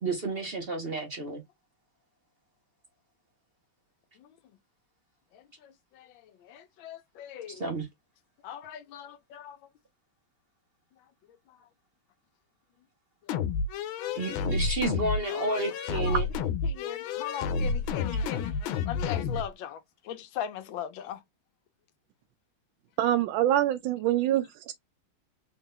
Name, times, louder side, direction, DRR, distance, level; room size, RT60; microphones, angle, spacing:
voice 1, 0.0-1.4 7.6-7.9 14.2-16.3, right 2 dB, 40° right, 0.9 m, -31 dB
voice 2, 5.3-7.6 8.4-9.6 11.5-11.7 15.3-15.6 15.9-16.2 16.6-18.5 18.9-21.2, left 10 dB, 75° left, 1.4 m, -40 dB
sound 1, 13.3-19.5, left 5 dB, 90° left, 1.5 m, -30 dB
voice 3, 23.0-24.7, right 12 dB, 80° right, 1.4 m, -25 dB
4.1 x 2.4 x 3.6 m
omnidirectional pair, 2.2 m